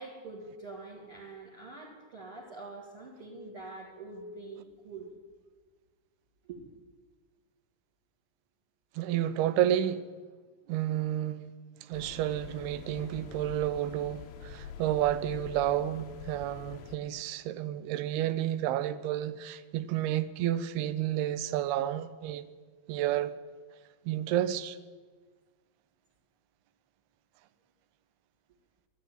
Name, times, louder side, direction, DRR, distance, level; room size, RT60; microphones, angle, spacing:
voice 1, 0.0-5.1 6.5-6.7, right 3 dB, 45° right, 2.1 m, -45 dB
voice 2, 9.0-10.0 10.7-11.5 11.9-22.5 22.9-23.3 24.1-24.8, right 12 dB, 85° right, 2.6 m, -30 dB
sound 1, 11.9-17.0, left 8 dB, 85° left, 1.7 m, -46 dB
12.5 x 11.5 x 9.0 m
omnidirectional pair, 4.5 m